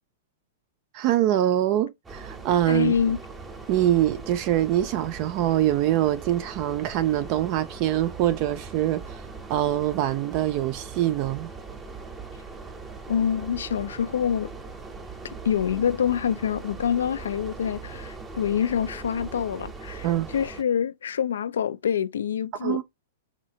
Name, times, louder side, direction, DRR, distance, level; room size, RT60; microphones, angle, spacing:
voice 1, 0.9-2.9 3.7-11.5 20.0-20.3 22.6-22.8, right 12 dB, 45° right, 0.3 m, -24 dB
sound 1, 2.0-20.6, right 4 dB, 15° right, 0.7 m, -40 dB
voice 2, 2.7-3.2 13.1-14.5 15.2-20.1 20.3-22.8, left 8 dB, 80° left, 0.3 m, -26 dB
3.2 x 2.7 x 2.7 m
hypercardioid pair, 120°, 0 cm